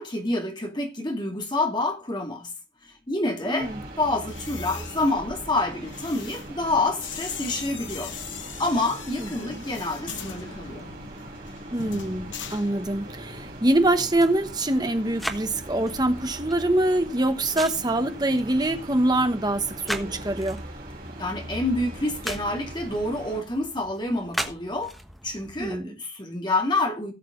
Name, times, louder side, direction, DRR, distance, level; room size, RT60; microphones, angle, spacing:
voice 1, 0.0-2.5 3.1-3.7 4.0-8.1 8.6-10.9 21.2-24.9 25.2-27.1, left 2 dB, 25° left, 2.2 m, -27 dB
voice 2, 3.4-3.8 9.2-9.6 11.7-20.6 25.6-25.9, right 1 dB, 20° right, 1.1 m, -24 dB
sound 1, 3.6-23.4, right 1 dB, 50° right, 3.9 m, -40 dB
sound 2, 4.2-13.3 13.5-13.9, left 7 dB, 85° left, 1.3 m, -41 dB
sound 3, 7.1-25.8, equal, ahead, 1.2 m, -41 dB
17.5 x 6.6 x 3.8 m
head